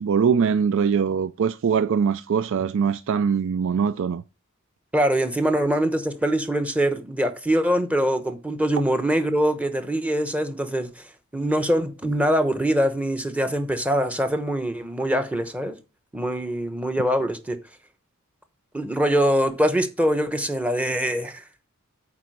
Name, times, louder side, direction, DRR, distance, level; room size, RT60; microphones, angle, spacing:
voice 1, 0.0-4.2, right 6 dB, 65° right, 0.4 m, -22 dB
voice 2, 4.9-11.0 11.3-15.7 16.1-17.6 18.7-21.4, equal, 5° right, 0.9 m, -23 dB
8.8 x 4.1 x 6.5 m
head